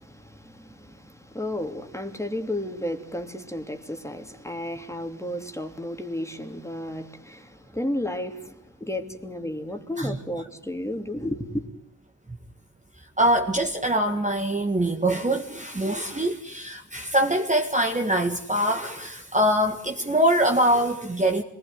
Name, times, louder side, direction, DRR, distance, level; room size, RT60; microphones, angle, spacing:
voice 1, 0.0-11.7, left 1 dB, 5° left, 2.9 m, -33 dB
voice 2, 13.2-21.4, right 1 dB, 20° right, 1.8 m, -23 dB
26.5 x 20.0 x 9.3 m
wide cardioid pair, 75°, 39 cm